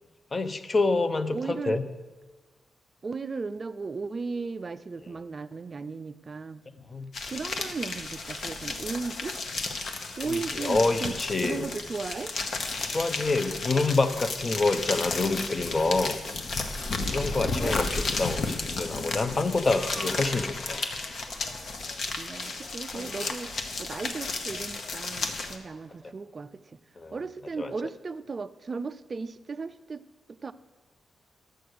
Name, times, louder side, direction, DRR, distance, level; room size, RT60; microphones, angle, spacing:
voice 1, 0.3-1.8 6.9-7.1 10.3-11.7 12.9-16.2 17.1-20.8 22.9-23.1 27.0-27.2 27.6-27.7, left 3 dB, 25° left, 11 dB, 0.6 m, -27 dB
voice 2, 1.3-1.8 3.0-6.6 7.3-9.4 10.2-12.3 17.6-18.0 22.2-26.8 27.1-30.0 30.3-30.5, right 4 dB, 30° right, 12 dB, 0.4 m, -36 dB
sound 1, 7.1-25.6, left 3 dB, 50° left, 1.0 m, -33 dB
sound 2, 19.7-26.1, right 1 dB, ahead, 1.3 m, -50 dB
11.0 x 7.8 x 6.5 m, 1.3 s
wide cardioid pair, 150°, 0 cm